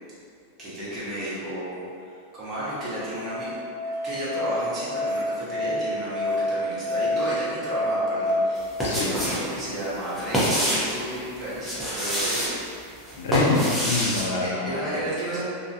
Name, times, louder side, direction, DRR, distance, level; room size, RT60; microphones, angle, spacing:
voice 1, 0.6-3.5 4.0-12.9 14.4-15.4, right 1 dB, 30° right, -10 dB, 1.1 m, -33 dB
Musical instrument, 2.6-8.3, left 1 dB, 65° right, 0.4 m, -29 dB
sound 1, 8.6-9.4 9.7-10.9 11.5-12.5 13.1-14.2, equal, ahead, 0.7 m, -26 dB
voice 2, 13.2-15.0, left 3 dB, 80° left, -1 dB, 0.4 m, -26 dB
2.4 x 2.2 x 2.6 m, 2.3 s
hypercardioid pair, 125°, 0 cm